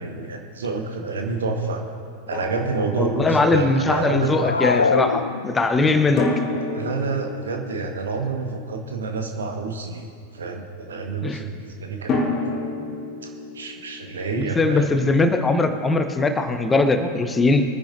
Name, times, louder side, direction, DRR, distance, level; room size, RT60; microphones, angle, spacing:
voice 1, 0.0-1.9 2.3-4.4 5.8-5.9 6.7-12.3 13.2-14.9, right 4 dB, 65° right, 3 dB, 1.4 m, -28 dB
Drum, 2.3-3.7 6.2-9.1 12.1-14.9, left 3 dB, 30° left, 2.3 m, -30 dB
voice 2, 3.0-6.3 11.2-11.4 14.4-17.6, left 3 dB, 15° left, 7 dB, 0.9 m, -20 dB
sound 1, 4.2-5.9, left 5 dB, 75° left, 0.3 m, -23 dB
23.0 x 10.0 x 2.6 m, 2.3 s
figure-of-eight pair, 90°, 0 cm